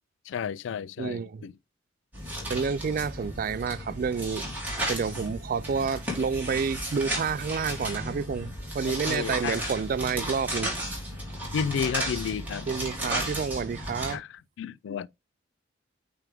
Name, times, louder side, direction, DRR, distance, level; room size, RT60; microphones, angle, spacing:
voice 1, 0.3-1.5 9.1-9.6 11.5-12.7 14.1-14.3 14.6-15.1, left 7 dB, 70° left, 0.3 m, -31 dB
voice 2, 1.0-1.4 2.5-4.5 4.9-10.7 12.7-14.2, right 5 dB, 45° right, 0.3 m, -29 dB
sound 1, 2.1-14.1, right 1 dB, 10° right, 3.0 m, -34 dB
9.0 x 3.5 x 3.5 m
head